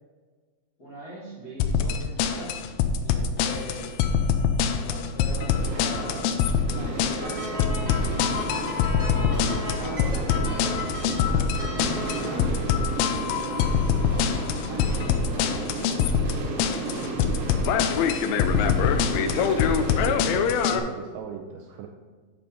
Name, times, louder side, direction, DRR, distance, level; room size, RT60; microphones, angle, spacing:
voice 1, 0.8-2.7 3.0-4.0 4.8-6.4 6.7-7.6 8.9-11.1 12.0-13.8 14.0-16.1 16.6-17.3, equal, 50° left, -9 dB, 1.2 m, -41 dB
sound 1, 1.6-20.8, left 7 dB, 80° left, 2.4 m, -24 dB
sound 2, 5.3-20.1, right 3 dB, 65° right, 1.6 m, -34 dB
sound 3, 7.2-12.4, right 1 dB, 25° right, 1.5 m, -35 dB
voice 2, 19.2-21.9, right 7 dB, 85° right, 2 dB, 2.0 m, -38 dB
7.2 x 5.1 x 5.4 m, 1.5 s
omnidirectional pair, 4.4 m